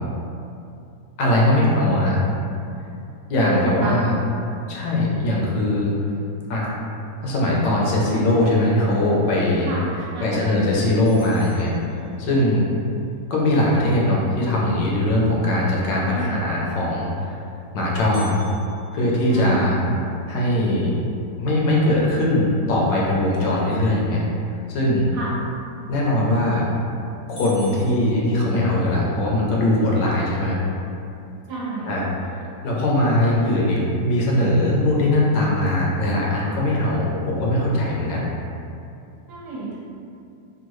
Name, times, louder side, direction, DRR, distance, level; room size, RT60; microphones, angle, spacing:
voice 1, 1.2-2.2 3.3-4.1 4.7-5.9 6.5-6.7 7.2-9.7 10.2-11.7 12.2-12.6 13.3-17.4 17.7-18.4 18.9-19.8 20.3-20.9 21.4-24.2 24.7-25.1 25.9-26.7 27.3-30.6 31.9-32.1 32.6-38.3, left 1 dB, 75° left, -4 dB, 1.2 m, -20 dB
voice 2, 3.5-4.1 9.7-9.9 10.1-10.6 12.3-12.6 14.0-14.2 16.0-16.5 19.3-19.8 25.1-25.3 31.5-31.9 39.3-39.8, right 3 dB, 70° right, -7 dB, 1.2 m, -31 dB
sound 1, 11.1-12.6 18.1-20.3 20.8-20.9 21.4-21.5 22.2-22.5 26.1-26.5 26.9-27.0 27.4-29.1, left 1 dB, 40° left, 0.7 m, -46 dB
3.6 x 2.2 x 3.0 m, 2.6 s
omnidirectional pair, 2.0 m